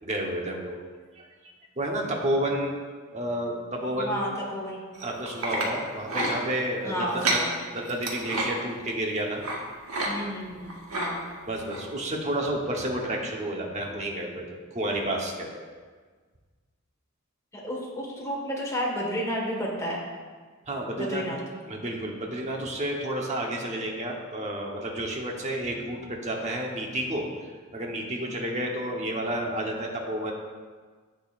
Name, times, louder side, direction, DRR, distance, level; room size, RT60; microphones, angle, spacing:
voice 1, 0.0-0.8 1.2-1.3 1.8-2.7 3.1-4.5 5.0-9.4 11.4-15.6 20.7-21.2 21.7-30.3, right 1 dB, 30° right, 0 dB, 1.1 m, -31 dB
voice 2, 4.0-4.8 6.8-7.6 10.0-11.2 17.5-20.0 21.0-21.4, equal, 15° left, -3 dB, 1.7 m, -31 dB
sound 1, 4.9-5.7 6.1-6.3 7.1-7.4 7.9-8.5 9.4-9.6 9.9-10.1 10.4-11.1 11.7-11.8 12.3-12.4, right 2 dB, 75° right, 1.6 m, -29 dB
10.5 x 8.0 x 2.6 m, 1.5 s
head